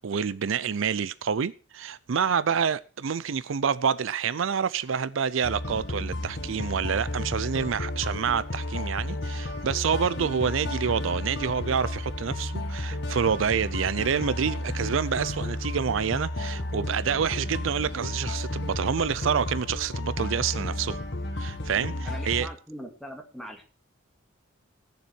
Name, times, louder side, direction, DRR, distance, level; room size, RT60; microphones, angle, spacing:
voice 1, 0.0-21.0 21.4-22.5, right 7 dB, 75° right, 0.5 m, -28 dB
sound 1, 5.4-22.5, left 1 dB, 55° left, 1.6 m, -32 dB
voice 2, 22.0-23.7, equal, ahead, 2.1 m, -41 dB
18.0 x 7.2 x 4.5 m
head